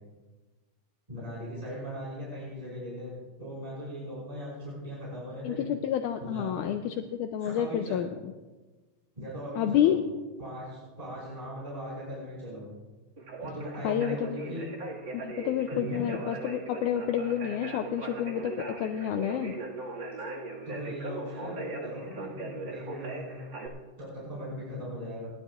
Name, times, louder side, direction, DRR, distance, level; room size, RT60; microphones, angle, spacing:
voice 1, 1.1-3.1 3.4-5.7 6.2-6.7 7.4-8.0 9.1-9.9 10.4-12.6 13.4-14.7 15.7-16.1 20.6-23.4 24.0-25.3, equal, 10° right, -8 dB, 5.1 m, -39 dB
voice 2, 5.4-8.1 9.6-10.0 13.8-14.6 15.1-19.6, left 10 dB, 80° left, 6 dB, 2.0 m, -29 dB
Conversation, 13.2-23.7, right 2 dB, 40° right, 2.3 m, -39 dB
27.5 x 12.0 x 2.5 m, 1.3 s
omnidirectional pair, 3.9 m